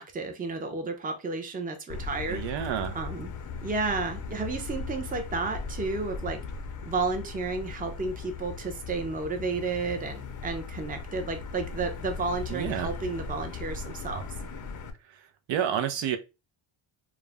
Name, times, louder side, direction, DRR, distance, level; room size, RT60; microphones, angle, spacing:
voice 1, 0.0-2.4 2.9-3.3 3.6-6.4 6.8-14.3, right 3 dB, 20° right, 0.5 m, -32 dB
Motor vehicle (road), 1.9-14.9, left 5 dB, 40° left, 0.5 m, -38 dB
voice 2, 2.3-3.0 12.5-12.9 15.5-16.2, right 9 dB, 65° right, 0.6 m, -29 dB
2.4 x 2.0 x 3.3 m
cardioid pair, 100°, 48 cm